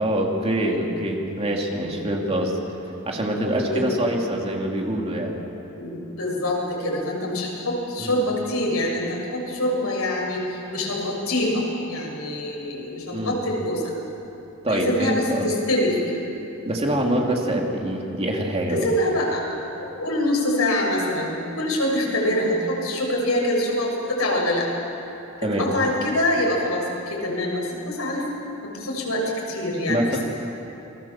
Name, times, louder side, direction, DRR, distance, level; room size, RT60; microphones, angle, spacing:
voice 1, 0.0-2.6 3.0-5.3 8.0-8.2 13.1-13.4 14.6-15.5 16.6-18.9 25.4-25.7 29.9-30.2, right 1 dB, 30° right, 0 dB, 2.9 m, -25 dB
voice 2, 3.6-4.0 5.8-13.8 14.7-16.2 16.6-16.7 18.7-19.5 19.8-24.7 25.6-28.2 28.6-30.2, left 1 dB, 85° left, -1 dB, 6.9 m, -25 dB
28.5 x 22.0 x 7.4 m, 3.0 s
head